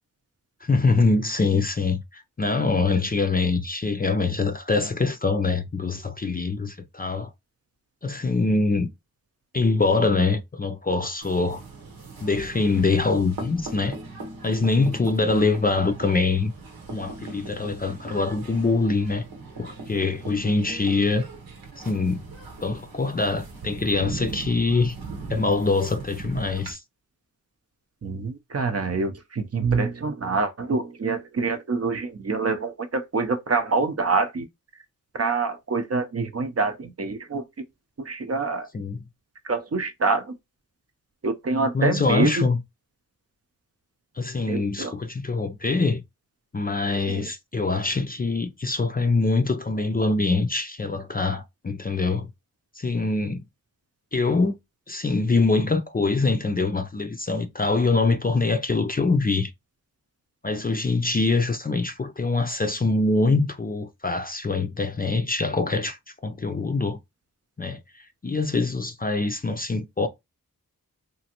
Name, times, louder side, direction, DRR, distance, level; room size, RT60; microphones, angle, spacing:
voice 1, 0.6-7.3 8.0-8.9 9.5-11.6 12.2-14.0 14.4-16.5 16.9-19.2 19.6-21.2 21.8-22.2 22.6-25.0 25.3-26.8 38.7-39.0 41.7-42.6 44.2-46.0 46.5-52.3 52.8-53.4 54.1-54.5 54.9-59.5 60.4-66.0 66.2-67.0 67.6-70.1, left 3 dB, 25° left, 0.4 m, -24 dB
sound 1, 11.2-26.7, right 3 dB, 85° right, 0.9 m, -39 dB
voice 2, 28.0-34.5 35.1-37.4 38.0-38.7 39.4-40.3 41.2-42.3 44.5-44.9 47.1-47.3, right 4 dB, 45° right, 0.6 m, -26 dB
3.0 x 2.5 x 2.8 m
cardioid pair, 55°, 36 cm